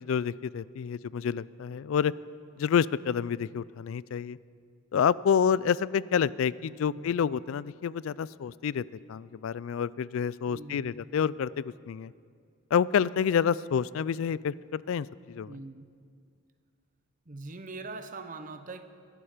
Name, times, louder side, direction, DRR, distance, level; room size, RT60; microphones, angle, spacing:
voice 1, 0.0-2.1 2.6-4.4 4.9-8.8 9.1-12.1 12.7-15.6, left 7 dB, 70° left, 20 dB, 0.3 m, -28 dB
voice 2, 10.5-11.0 15.5-15.9 17.3-18.8, right 3 dB, 35° right, 9 dB, 0.8 m, -42 dB
21.0 x 11.5 x 5.0 m, 2.3 s
head